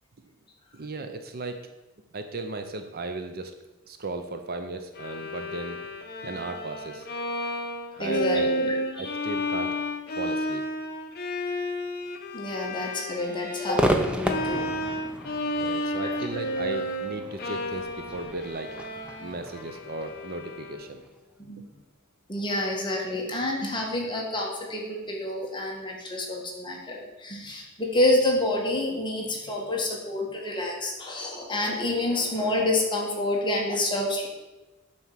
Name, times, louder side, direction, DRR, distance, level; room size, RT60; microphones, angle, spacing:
voice 1, 0.7-1.6 2.1-3.5 3.9-5.8 6.2-7.1 7.9-8.5 9.0-9.8 10.2-10.6 15.6-18.7 19.2-21.0, right 3 dB, 45° right, 7 dB, 0.6 m, -36 dB
Bowed string instrument, 4.9-21.0, left 1 dB, 45° left, 1.0 m, -32 dB
voice 2, 8.0-9.2 12.3-14.7 15.6-16.1 21.5-21.6 22.3-34.3, left 1 dB, 20° left, -1 dB, 1.5 m, -28 dB
Crowd / Fireworks, 13.7-21.1, right 1 dB, 5° right, 0.6 m, -32 dB
9.4 x 4.4 x 7.4 m, 1.1 s
head